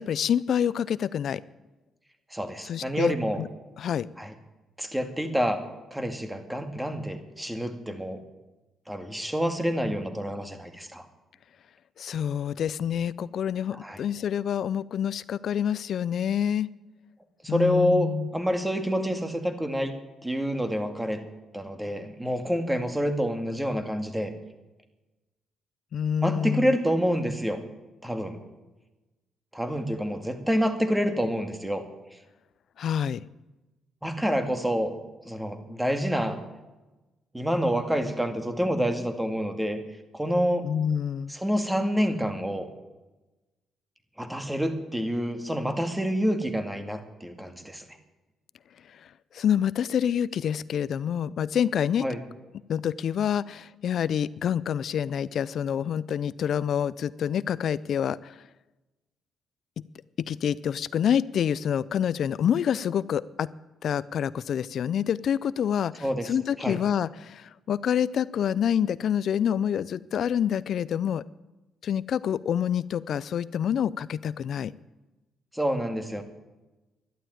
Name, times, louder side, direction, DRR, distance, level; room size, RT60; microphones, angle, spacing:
voice 1, 0.0-1.4 2.6-3.5 3.8-4.1 12.0-16.7 17.5-18.3 25.9-26.7 32.8-33.2 40.6-41.3 49.3-52.1 52.7-58.3 60.3-63.5 63.8-71.2 71.8-74.7, left 9 dB, 65° left, 19 dB, 0.4 m, -27 dB
voice 2, 2.3-3.4 4.2-4.3 4.8-5.6 5.9-8.2 8.9-11.0 13.7-14.0 17.4-19.9 20.2-21.2 21.5-24.3 26.2-27.6 28.0-28.4 29.5-31.9 34.0-35.0 35.3-36.4 37.3-39.8 40.1-40.6 41.3-42.7 44.2-47.8 52.0-52.2 66.0-66.8 75.5-76.2, equal, 5° right, 7 dB, 2.1 m, -27 dB
12.5 x 11.5 x 9.1 m, 1.1 s
cardioid pair, 90°, 0 cm